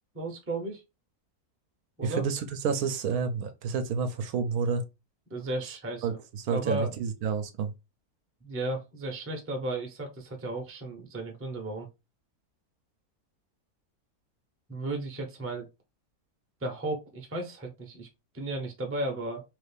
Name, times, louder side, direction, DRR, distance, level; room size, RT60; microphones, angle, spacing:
voice 1, 0.1-0.8 2.0-2.2 5.3-6.2 6.5-6.9 8.4-11.9 14.7-15.7 16.6-18.1 18.3-19.4, right 2 dB, 15° right, 0.5 m, -34 dB
voice 2, 2.0-4.8 6.0-7.7, right 6 dB, 75° right, 1.0 m, -29 dB
3.1 x 2.5 x 3.4 m
omnidirectional pair, 1.6 m